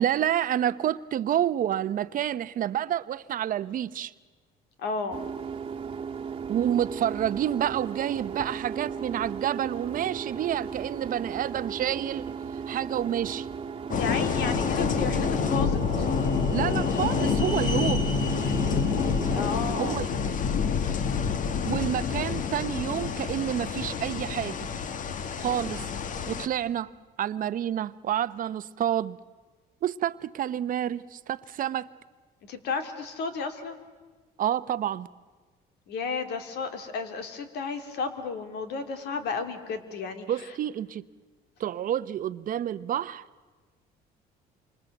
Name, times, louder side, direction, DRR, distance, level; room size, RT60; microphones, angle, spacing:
voice 1, 0.0-4.1 6.5-12.2 12.7-13.5 16.5-18.1 19.8-20.4 21.6-24.7 25.4-25.9 26.3-26.9 27.2-29.2 29.8-31.9 34.4-35.1 40.3-41.0 41.6-43.2, right 10 dB, 55° right, 0.8 m, -29 dB
voice 2, 4.8-5.2 14.0-16.0 19.3-20.0 32.5-33.8 35.9-40.3, left 4 dB, 75° left, 2.9 m, -33 dB
sound 1, 5.1-20.1, right 6 dB, 30° right, 1.5 m, -36 dB
sound 2, 13.9-26.5, left 6 dB, 50° left, 1.4 m, -28 dB
sound 3, 15.3-20.5, left 2 dB, 25° left, 1.8 m, -41 dB
28.0 x 25.5 x 7.9 m
cardioid pair, 110°, 17 cm